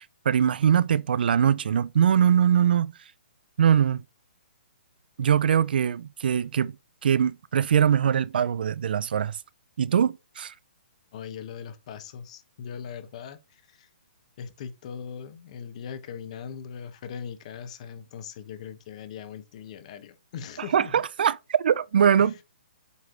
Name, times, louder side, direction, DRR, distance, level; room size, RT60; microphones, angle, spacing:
voice 1, 0.0-2.9 3.6-4.0 5.2-6.7 7.0-9.4 9.8-10.5 20.7-22.4, right 8 dB, 65° right, 0.4 m, -22 dB
voice 2, 11.1-13.9 14.4-21.0 22.2-22.4, left 7 dB, 40° left, 1.0 m, -40 dB
8.1 x 3.3 x 3.9 m
hypercardioid pair, 160°, 6 cm